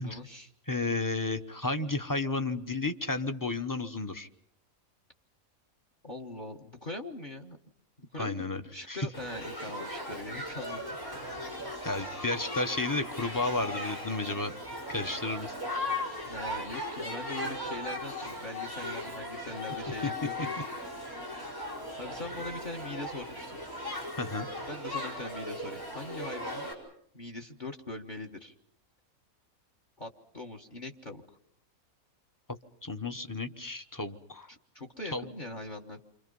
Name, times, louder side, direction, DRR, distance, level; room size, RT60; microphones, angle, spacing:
voice 1, 0.0-0.5 6.0-7.6 8.1-11.2 16.2-20.5 22.0-23.6 24.7-26.7 27.1-28.5 30.0-30.1 30.3-31.2 34.5-36.0, left 2 dB, 35° left, 5 dB, 1.5 m, -41 dB
voice 2, 0.7-4.3 8.2-8.6 8.9-9.1 11.8-14.5 14.9-15.5 20.0-20.1 24.2-24.5 32.8-34.5 35.1-35.3, left 2 dB, 15° left, 8 dB, 0.9 m, -32 dB
Shout / Human group actions, 9.1-26.7, left 1 dB, 75° left, 5.6 m, -38 dB
29.5 x 25.0 x 5.4 m, 0.67 s
omnidirectional pair, 1.5 m